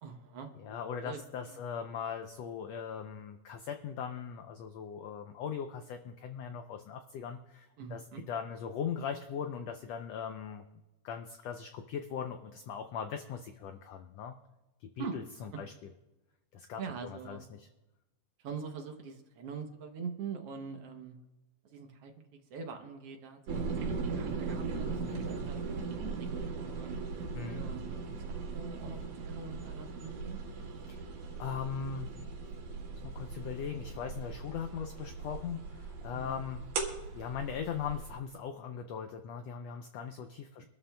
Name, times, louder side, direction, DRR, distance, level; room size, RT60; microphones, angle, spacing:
voice 1, 0.0-1.2 1.5-1.6 7.8-8.2 15.0-15.6 16.8-17.4 18.4-21.2 21.6-22.1 22.5-26.3 26.6-27.0 27.5-28.0 28.5-29.0 29.2-30.4 36.1-36.4, right 5 dB, 65° right, 4 dB, 1.5 m, -43 dB
voice 2, 0.6-8.0 8.3-10.6 11.0-14.4 14.8-15.7 16.5-17.7 27.3-27.6 30.9-31.0 31.4-32.1 32.9-36.6 37.1-40.6, left 7 dB, 85° left, 6 dB, 1.4 m, -39 dB
sound 1, 23.5-38.2, right 4 dB, 90° right, 3.4 m, -39 dB
24.5 x 13.0 x 2.2 m, 1.0 s
omnidirectional pair, 3.7 m